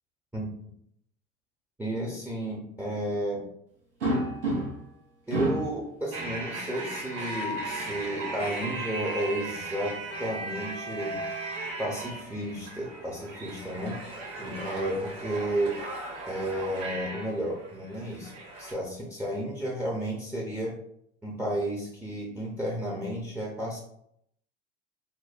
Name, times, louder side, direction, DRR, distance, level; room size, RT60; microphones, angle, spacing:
voice 1, 1.8-3.5 5.3-11.2 11.8-14.0 14.4-15.8 16.3-20.8 21.2-23.8, right 1 dB, 5° right, -2 dB, 0.6 m, -32 dB
sound 1, 4.0-4.9 5.3-5.8 7.0-7.8 10.4-11.5 12.9-13.1 13.4-13.5 15.1-16.3, right 1 dB, 85° right, 0.9 m, -33 dB
sound 2, 6.1-18.7, right 3 dB, 45° right, 1.1 m, -38 dB
4.1 x 2.1 x 2.4 m, 0.72 s
figure-of-eight pair, 75°, 35 cm